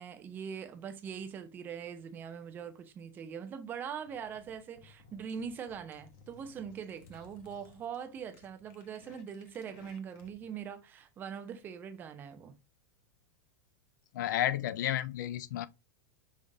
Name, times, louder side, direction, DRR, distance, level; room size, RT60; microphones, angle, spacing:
voice 1, 0.0-12.6, right 7 dB, 20° right, 0.5 m, -42 dB
sound 1, 4.0-10.5, left 5 dB, 45° left, 0.9 m, -59 dB
voice 2, 14.1-15.7, left 12 dB, 75° left, 0.4 m, -32 dB
5.3 x 2.4 x 3.8 m
supercardioid pair, 165°, 10 cm